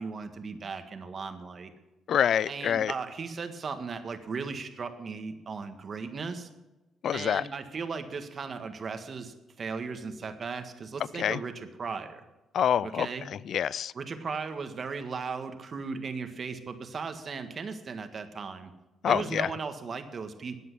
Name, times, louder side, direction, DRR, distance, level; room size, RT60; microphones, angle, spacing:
voice 1, 0.0-1.7 2.5-6.5 7.1-12.2 12.8-13.3 13.9-18.7 19.1-20.6, right 5 dB, 45° right, 8 dB, 1.7 m, -37 dB
voice 2, 2.1-2.9 7.0-7.4 11.2-11.4 12.5-13.9 19.0-19.5, left 9 dB, 65° left, 22 dB, 0.4 m, -26 dB
14.0 x 9.3 x 6.2 m, 1.0 s
cardioid pair, 90°, 0 cm